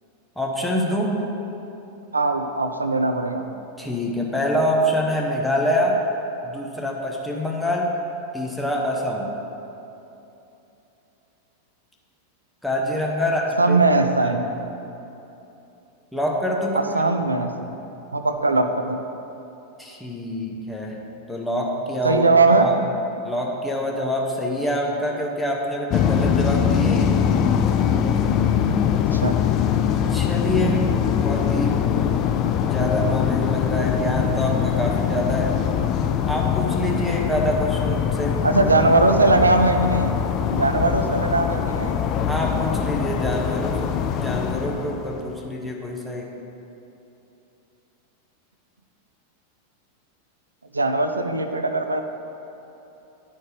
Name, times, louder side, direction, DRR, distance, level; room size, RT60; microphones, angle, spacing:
voice 1, 0.4-1.2 3.8-6.0 6.4-7.9 8.3-9.3 12.6-13.8 14.2-14.4 16.1-17.0 19.8-21.0 21.3-22.3 22.6-22.7 23.2-27.4 30.1-31.8 32.7-35.6 36.2-38.4 42.3-43.9 44.2-46.3, equal, ahead, -2 dB, 0.8 m, -25 dB
voice 2, 2.1-3.5 13.6-14.4 16.7-17.7 18.1-19.0 22.0-22.7 28.9-29.4 38.4-40.1 40.5-42.0 50.7-52.0, right 2 dB, 80° right, 7 dB, 0.4 m, -20 dB
sound 1, 25.9-45.4, left 8 dB, 35° left, 0.3 m, -22 dB
10.5 x 4.3 x 3.3 m, 3.0 s
figure-of-eight pair, 90°, 0 cm